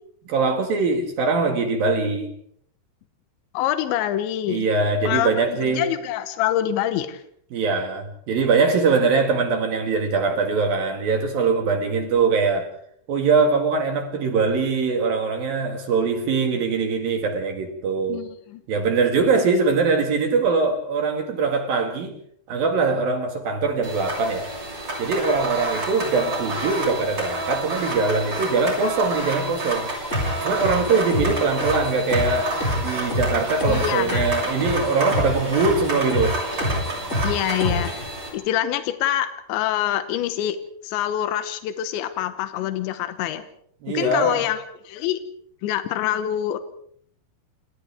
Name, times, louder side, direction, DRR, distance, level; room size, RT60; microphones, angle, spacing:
voice 1, 0.3-2.3 4.5-5.8 7.5-12.7 13.1-18.2 18.7-22.1 22.5-24.5 25.0-29.9 30.4-36.4 43.8-44.5, right 4 dB, 60° right, 3.4 m, -22 dB
voice 2, 3.5-4.6 5.0-7.2 18.1-18.6 33.7-34.3 37.2-37.9 38.3-40.6 40.8-43.4 43.9-45.2 45.6-46.6, left 12 dB, 85° left, 3.3 m, -25 dB
sound 1, 23.8-38.3, right 2 dB, 25° right, 7.8 m, -29 dB
sound 2, 30.1-38.1, left 1 dB, 15° left, 5.6 m, -28 dB
29.0 x 27.5 x 3.5 m
omnidirectional pair, 5.1 m